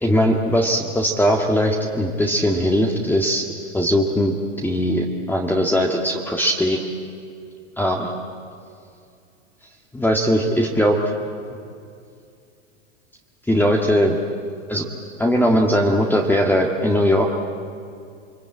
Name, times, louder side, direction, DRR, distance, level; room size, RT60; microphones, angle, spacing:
voice 1, 0.0-3.4 3.7-4.3 4.6-6.9 7.8-8.1 9.9-11.0 13.5-14.2 14.7-14.8 15.2-17.3, equal, 5° left, 1 dB, 1.8 m, -19 dB
28.0 x 21.5 x 8.8 m, 2.4 s
hypercardioid pair, 120°, 35 cm